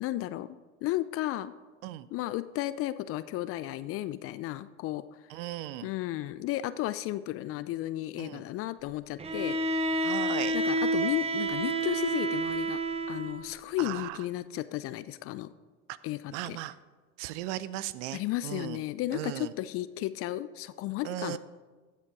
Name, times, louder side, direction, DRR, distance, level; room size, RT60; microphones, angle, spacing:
voice 1, 0.0-1.5 2.1-5.0 5.8-9.9 10.5-12.8 13.1-15.5 16.0-16.6 18.1-21.4, left 15 dB, 35° left, 15 dB, 0.4 m, -34 dB
voice 2, 5.3-5.9 8.2-8.4 10.0-10.6 13.8-14.2 15.9-16.0 16.3-16.8 17.2-18.8 19.1-19.5 21.0-21.4, right 14 dB, 55° right, 17 dB, 0.7 m, -37 dB
Bowed string instrument, 9.2-13.5, right 2 dB, 15° right, 0.8 m, -29 dB
15.0 x 7.5 x 4.7 m, 1.4 s
hypercardioid pair, 90°, 43 cm